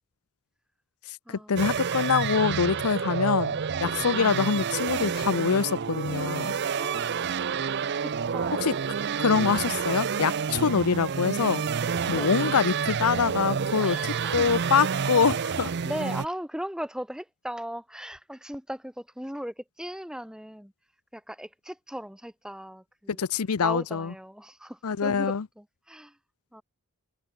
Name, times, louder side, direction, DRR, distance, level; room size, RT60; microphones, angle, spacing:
voice 1, 1.1-6.5 8.6-8.7 9.2-11.6 12.1-14.0 14.3-15.7 23.2-24.1 24.8-25.4, left 6 dB, 80° left, 0.6 m, -25 dB
sound 1, 1.6-16.3, right 6 dB, 50° right, 0.5 m, -29 dB
voice 2, 6.8-7.6 8.0-8.8 12.1-12.3 13.8-14.5 15.9-20.7 21.1-23.2 23.6-26.2 26.5-26.6, equal, 5° right, 2.2 m, -38 dB
head